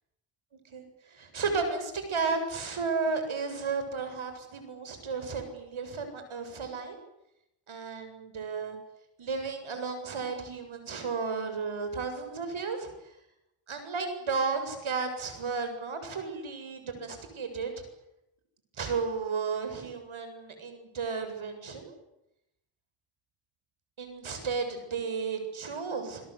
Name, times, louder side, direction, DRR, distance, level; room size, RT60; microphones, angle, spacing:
voice 1, 1.1-7.0 7.7-8.8 9.2-12.9 13.7-17.7 18.8-21.9 24.0-26.3, right 4 dB, 75° right, 7 dB, 7.8 m, -33 dB
29.0 x 22.0 x 8.4 m, 0.84 s
cardioid pair, 70°, 49 cm